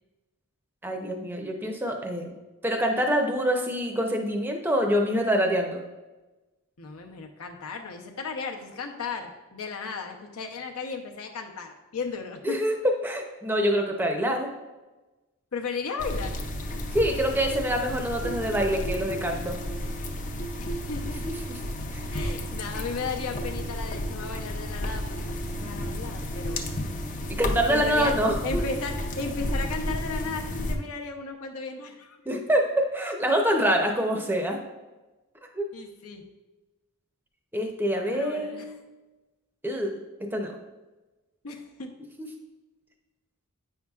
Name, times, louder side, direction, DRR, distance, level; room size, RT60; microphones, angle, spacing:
voice 1, 0.8-2.3 2.6-5.8 12.4-12.7 13.0-14.5 16.9-19.6 21.2-21.6 21.9-22.0 27.3-28.6 32.3-34.6 35.6-35.7 37.5-38.8 39.6-40.5 42.2-42.3, equal, 10° right, 3 dB, 0.6 m, -26 dB
voice 2, 6.8-12.6 15.5-16.4 20.6-21.2 22.1-26.6 27.7-28.1 28.4-32.2 35.7-36.2 38.1-38.8 41.4-41.9, left 4 dB, 75° left, 3 dB, 0.8 m, -35 dB
sound 1, 16.0-30.8, equal, 35° left, 0.5 m, -32 dB
8.3 x 5.5 x 2.4 m, 1.1 s
head